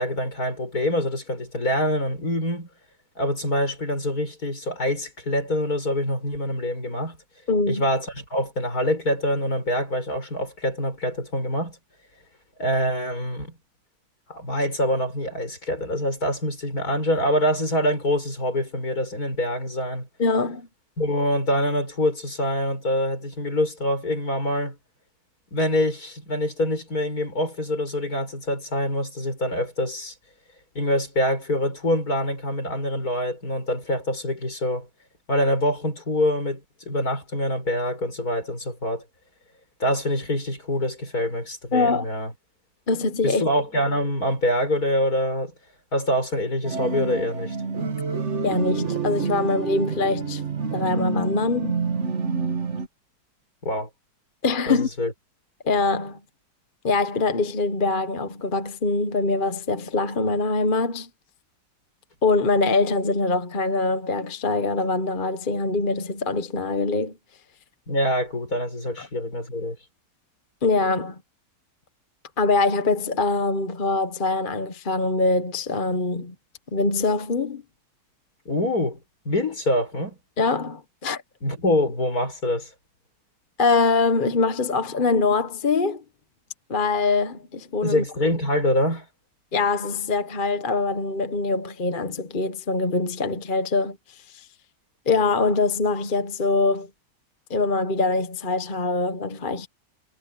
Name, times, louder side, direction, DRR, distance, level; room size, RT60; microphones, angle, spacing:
voice 1, 0.0-2.7 3.2-7.2 7.7-11.8 12.6-13.5 14.3-20.1 21.0-24.8 25.5-30.1 30.8-34.9 35.3-39.0 39.8-42.3 43.2-45.5 45.9-47.6 53.6-53.9 54.7-55.1 67.9-69.8 78.5-79.0 79.3-80.2 81.4-82.7 87.8-89.1, left 1 dB, 55° left, 7.5 m, -25 dB
voice 2, 7.5-7.9 20.2-20.7 41.7-42.0 42.9-43.4 48.4-50.4 50.7-51.8 54.4-54.9 55.6-56.2 56.8-61.1 62.2-67.1 69.0-69.1 70.6-71.2 72.4-76.3 76.7-77.6 80.4-81.2 83.6-86.0 86.7-88.0 89.5-94.5 95.1-96.9 97.5-99.7, left 3 dB, 35° left, 1.1 m, -23 dB
sound 1, 46.6-52.9, right 5 dB, 40° right, 1.9 m, -28 dB
omnidirectional pair, 1.9 m